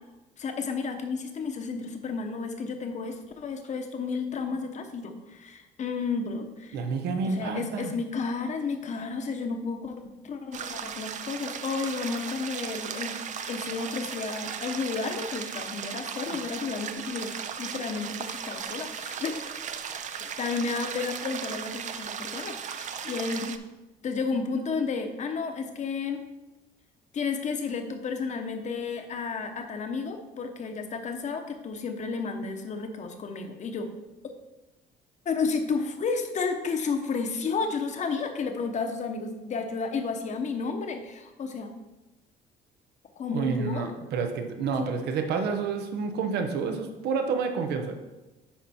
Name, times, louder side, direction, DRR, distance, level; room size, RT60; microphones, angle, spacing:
voice 1, 0.4-6.8 7.2-13.2 13.5-19.6 20.4-23.6 24.0-26.2 27.1-33.9 34.2-34.3 35.2-41.7 43.2-43.9 44.7-45.0, left 4 dB, 45° left, 6 dB, 1.1 m, -32 dB
voice 2, 6.7-7.9 16.3-16.4 43.3-48.0, right 5 dB, 75° right, 6 dB, 1.0 m, -29 dB
sound 1, 10.5-23.6, right 7 dB, 45° right, 0.6 m, -36 dB
10.0 x 4.1 x 4.3 m, 1.1 s
cardioid pair, 110°, 17 cm